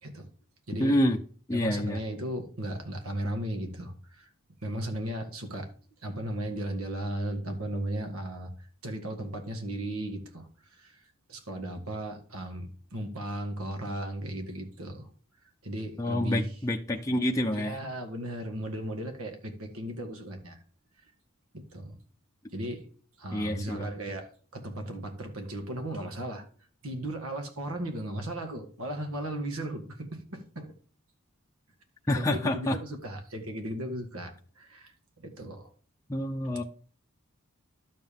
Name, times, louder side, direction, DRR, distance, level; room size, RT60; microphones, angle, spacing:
voice 1, 0.8-1.2 1.5-2.0 16.0-17.8 23.3-23.9 32.1-32.8 36.1-36.6, left 1 dB, 15° left, 0.6 m, -27 dB
voice 2, 1.5-4.3 4.6-5.7 6.0-8.5 8.8-11.0 11.3-15.1 15.6-16.5 17.1-17.2 17.5-20.6 21.5-22.0 22.5-22.9 23.2-26.4 26.8-30.7 32.2-35.7, right 1 dB, 80° right, 1.9 m, -36 dB
12.0 x 7.6 x 3.6 m
head